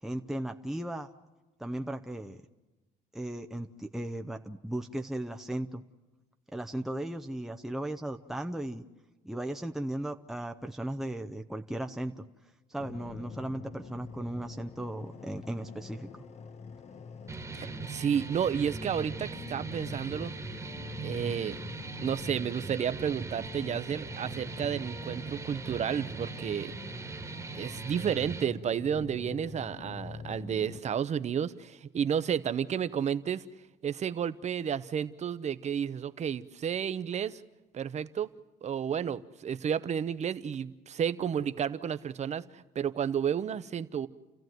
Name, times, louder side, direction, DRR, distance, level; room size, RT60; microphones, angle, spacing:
voice 1, 0.0-1.1 1.6-2.4 3.1-5.8 6.5-8.8 9.2-12.3 12.7-16.1, right 1 dB, ahead, 5 dB, 0.8 m, -36 dB
sound 1, 12.8-30.8, left 4 dB, 40° left, 1.1 m, -45 dB
sound 2, 17.3-28.4, right 4 dB, 15° right, 1.7 m, -40 dB
voice 2, 17.5-20.3 21.0-21.6 22.0-26.7 27.5-33.5 33.8-37.4 37.7-38.3 38.6-44.1, right 8 dB, 40° right, 14 dB, 0.9 m, -31 dB
30.0 x 14.5 x 9.4 m, 1.1 s
cardioid pair, 110°, 17 cm